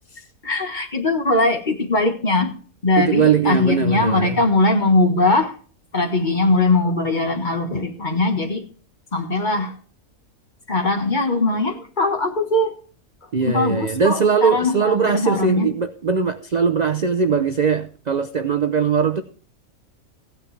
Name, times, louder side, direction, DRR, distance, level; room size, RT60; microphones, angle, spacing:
voice 1, 0.4-2.5 2.8-5.5 5.9-8.6 9.1-9.7 10.7-12.7 13.4-15.7, left 2 dB, 35° left, 1.5 m, -20 dB
voice 2, 3.0-4.4 13.3-19.2, right 6 dB, 50° right, 0.5 m, -20 dB
15.5 x 10.0 x 3.3 m
omnidirectional pair, 1.5 m